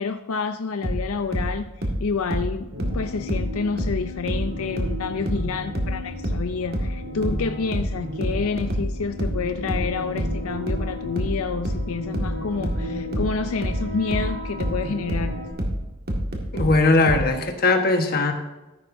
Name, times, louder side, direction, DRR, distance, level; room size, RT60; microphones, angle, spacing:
voice 1, 0.0-15.4, left 5 dB, 80° left, 9 dB, 0.5 m, -29 dB
sound 1, 0.8-4.0 4.3-17.3, equal, 45° right, 1.8 m, -27 dB
sound 2, 2.7-15.5, left 1 dB, 65° right, 3.5 m, -35 dB
voice 2, 16.5-18.3, left 3 dB, 45° left, 4 dB, 1.3 m, -19 dB
14.0 x 11.0 x 2.7 m, 1.1 s
head